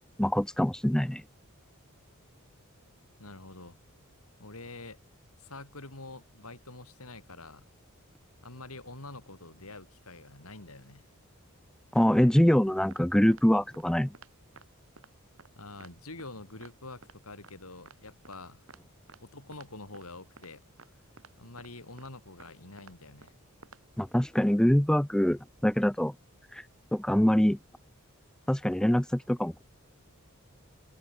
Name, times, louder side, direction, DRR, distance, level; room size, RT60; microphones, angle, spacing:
voice 1, 0.2-1.2 11.9-14.1 24.0-26.1 26.5-26.6 26.9-27.6 28.5-29.6, equal, 5° left, 0.3 m, -24 dB
voice 2, 3.2-3.8 4.4-5.0 5.4-7.6 8.4-11.1 15.5-18.7 19.2-21.0 21.4-23.3, left 2 dB, 85° left, 5.5 m, -46 dB
sound 1, 12.9-13.0 13.3-13.4 13.7-13.8 14.1-14.3 14.6-14.7 15.0-15.1 15.4-15.5 15.8-15.9 16.2-16.3 16.6-16.7 17.0-17.2 17.4-17.5 17.9-18.0 18.2-18.4 18.7-18.8 19.1-19.2 19.5-19.7 19.9-20.1 20.4-20.5 20.8-20.9 21.2-21.3 21.6-21.7 22.0-22.1 22.4-22.5 22.8-22.9 23.2-23.3 23.6-23.8, right 4 dB, 65° right, 1.7 m, -53 dB
head